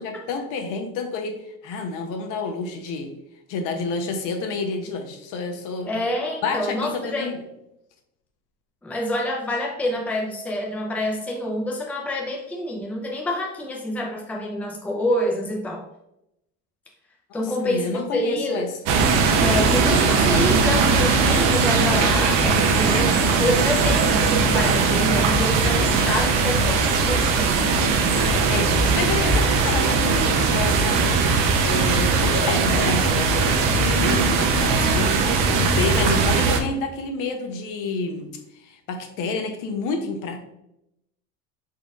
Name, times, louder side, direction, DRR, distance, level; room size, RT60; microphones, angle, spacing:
voice 1, 0.0-3.1 3.5-6.0 6.4-7.4 17.3-18.7 28.5-38.3 38.6-40.4, left 4 dB, 60° left, 5 dB, 0.7 m, -29 dB
voice 2, 5.9-7.3 8.8-15.8 17.3-18.7 19.4-27.7, left 1 dB, 5° left, -1 dB, 0.5 m, -27 dB
sound 1, 18.9-36.6, right 4 dB, 65° right, 0.7 m, -19 dB
sound 2, 22.9-29.6, right 1 dB, 20° left, 1.0 m, -32 dB
4.2 x 3.7 x 2.4 m, 0.83 s
cardioid pair, 140°, 35 cm